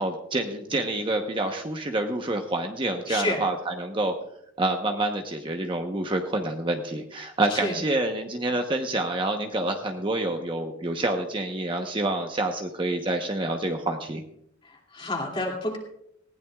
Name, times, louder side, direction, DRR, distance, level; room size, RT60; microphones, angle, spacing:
voice 1, 0.0-4.1 4.6-14.2, right 2 dB, 25° right, 4 dB, 0.9 m, -27 dB
voice 2, 3.1-3.4 7.5-7.8 14.6-15.8, left 2 dB, 25° left, 1 dB, 2.6 m, -29 dB
19.5 x 16.0 x 2.4 m, 0.74 s
head